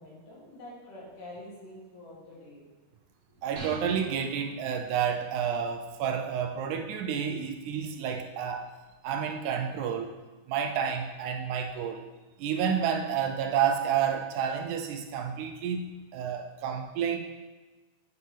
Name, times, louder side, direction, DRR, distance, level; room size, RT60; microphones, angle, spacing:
voice 1, 0.0-2.6, left 1 dB, 80° left, -7 dB, 4.2 m, -46 dB
voice 2, 3.4-8.7 9.0-10.1 10.5-12.1 12.4-17.2, right 7 dB, 80° right, 4 dB, 1.9 m, -30 dB
sound 1, 3.6-5.2, right 2 dB, 55° right, 1.6 m, -44 dB
8.4 x 6.5 x 3.3 m, 1.2 s
omnidirectional pair, 3.7 m